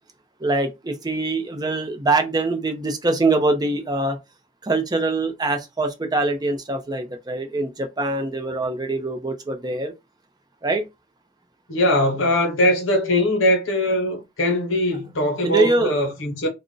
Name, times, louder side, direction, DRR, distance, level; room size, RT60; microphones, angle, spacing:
voice 1, 0.4-4.2 4.6-9.9 10.6-10.8 15.4-15.9, right 2 dB, 20° right, 0.5 m, -23 dB
voice 2, 11.7-16.5, left 1 dB, 90° left, 1.0 m, -21 dB
2.5 x 2.1 x 3.7 m
head